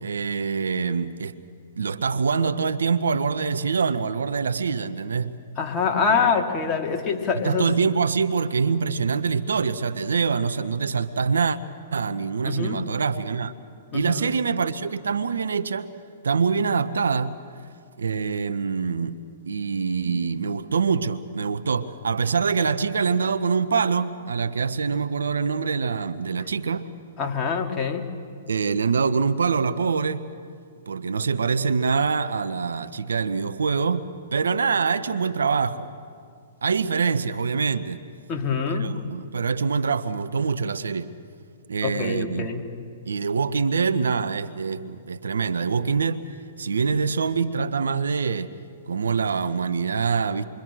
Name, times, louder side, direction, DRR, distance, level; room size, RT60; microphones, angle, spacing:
voice 1, 0.0-1.3 1.8-5.4 6.1-6.4 7.4-11.6 11.9-13.5 13.9-15.9 16.2-17.4 18.0-19.2 19.5-26.9 28.5-30.2 30.9-35.9 36.6-38.0 38.8-41.1 41.7-42.5 43.1-46.2 46.6-48.5 48.9-50.5, right 5 dB, 80° right, 1.0 m, -25 dB
voice 2, 5.6-7.6 12.4-12.8 13.9-14.3 27.2-28.1 38.3-38.9 41.8-42.6, left 5 dB, 25° left, 2.8 m, -25 dB
27.5 x 23.5 x 6.3 m
hypercardioid pair, 120°, 0 cm